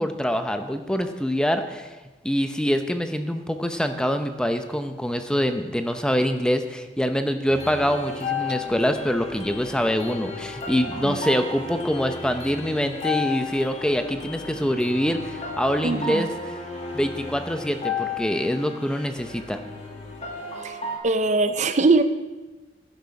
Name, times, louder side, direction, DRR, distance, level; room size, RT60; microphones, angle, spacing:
voice 1, 0.0-1.9 2.2-16.3 16.9-19.6, equal, 5° left, 7 dB, 0.7 m, -25 dB
sound 1, 7.5-21.0, left 4 dB, 40° left, 1.9 m, -33 dB
voice 2, 15.8-16.3 20.6-20.8 21.0-22.0, right 3 dB, 40° right, 10 dB, 0.5 m, -21 dB
11.5 x 11.0 x 4.9 m, 1.2 s
head